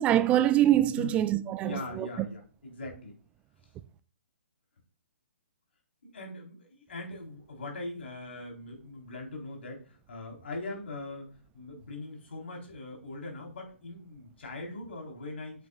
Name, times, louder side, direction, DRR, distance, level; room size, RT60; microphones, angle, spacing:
voice 1, 0.0-2.1, right 12 dB, 20° right, 0.4 m, -24 dB
voice 2, 1.6-3.2 6.0-11.3 11.5-15.7, left 2 dB, 65° left, 4.0 m, -41 dB
8.9 x 8.1 x 2.4 m
figure-of-eight pair, 130°, 7 cm